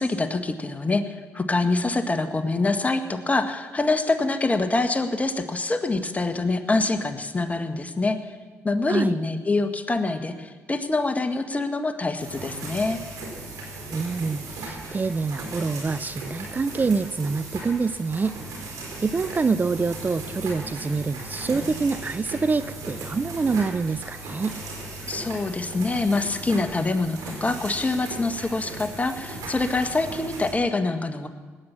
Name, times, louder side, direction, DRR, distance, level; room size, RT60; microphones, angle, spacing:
voice 1, 0.0-8.3 8.6-13.0 25.1-31.3, left 3 dB, 25° left, 8 dB, 1.5 m, -25 dB
sound 1, 12.2-30.5, right 2 dB, 75° right, 4.5 m, -37 dB
voice 2, 13.9-18.4 19.0-24.6, right 4 dB, 30° right, 14 dB, 0.5 m, -26 dB
18.0 x 9.9 x 7.3 m, 1.4 s
supercardioid pair, 55°, 6 cm